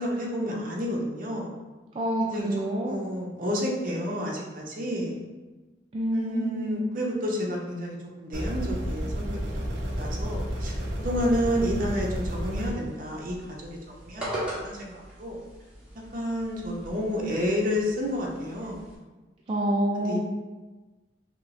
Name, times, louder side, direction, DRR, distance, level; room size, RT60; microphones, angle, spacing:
voice 1, 0.0-1.5 2.3-5.2 6.1-9.6 10.0-13.7 14.0-15.4 16.1-18.8 19.9-20.2, equal, 50° right, -2 dB, 0.7 m, -30 dB
voice 2, 2.0-3.0 5.9-7.0 19.5-20.2, equal, 30° right, -3 dB, 0.3 m, -27 dB
sound 1, 8.3-12.7, equal, 75° right, 0.9 m, -31 dB
sound 2, 9.7-18.9, right 1 dB, 5° right, 1.0 m, -42 dB
5.9 x 2.0 x 2.5 m, 1.2 s
head